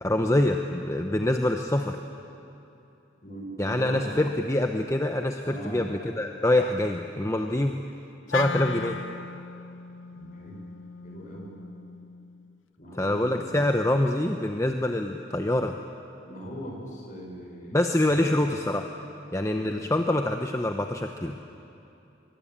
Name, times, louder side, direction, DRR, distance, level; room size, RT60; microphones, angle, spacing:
voice 1, 0.0-2.0 3.6-7.8 8.3-9.0 13.0-15.7 17.7-18.9 19.3-21.4, left 1 dB, 15° left, 4 dB, 0.8 m, -25 dB
voice 2, 3.2-4.2 5.4-5.9 10.1-10.6 11.0-11.5 12.8-13.6 16.2-17.8 18.1-18.3, equal, 40° left, 0 dB, 5.5 m, -40 dB
Wind instrument woodwind instrument, 8.3-12.6, left 4 dB, 75° left, 0.7 m, -37 dB
24.0 x 22.5 x 8.9 m, 2.8 s
head